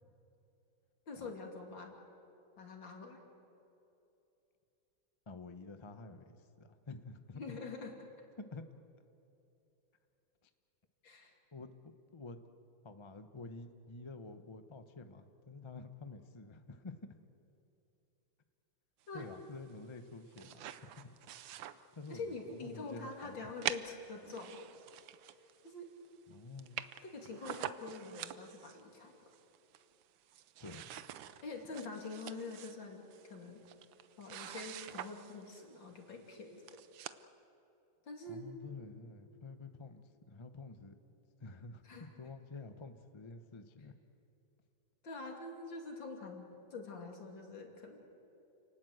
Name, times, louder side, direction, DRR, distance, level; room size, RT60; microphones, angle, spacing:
voice 1, 1.1-2.0 2.6-3.2 7.4-7.9 11.0-11.3 19.1-19.3 22.1-24.7 25.2-25.3 25.6-25.9 27.0-29.2 31.4-33.6 34.2-36.6 38.0-38.4 41.8-42.1 45.0-48.0, left 3 dB, 60° left, 2 dB, 3.4 m, -45 dB
voice 2, 5.3-7.6 8.5-8.6 10.4-10.5 11.5-11.7 12.1-12.4 12.8-17.0 19.1-21.1 21.9-23.5 26.3-26.9 30.6-30.9 38.3-40.9 41.4-43.9, left 3 dB, 40° left, 8 dB, 0.4 m, -49 dB
sound 1, 20.0-22.4 22.7-22.8 23.6-25.7 26.1-26.2 26.3-26.4 26.6-28.8 29.3-30.0 30.3-35.7 36.3-36.4 36.7-37.2, right 11 dB, 70° right, 1.4 m, -45 dB
29.5 x 19.0 x 7.9 m, 2.9 s
omnidirectional pair, 2.4 m